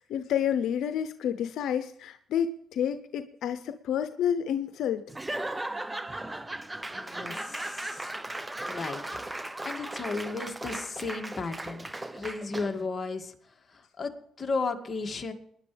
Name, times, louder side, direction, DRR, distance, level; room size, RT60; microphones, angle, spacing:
voice 1, 0.0-5.0, left 9 dB, 80° left, 10 dB, 0.8 m, -29 dB
Laughter / Applause / Crowd, 5.1-12.9, right 1 dB, 15° right, 0.8 m, -37 dB
voice 2, 6.9-8.1 8.7-9.2 9.6-11.9 12.1-13.3 13.7-14.1 14.4-15.3, left 3 dB, 30° left, 3 dB, 2.3 m, -34 dB
20.5 x 10.5 x 3.4 m, 0.66 s
cardioid pair, 90°, 0 cm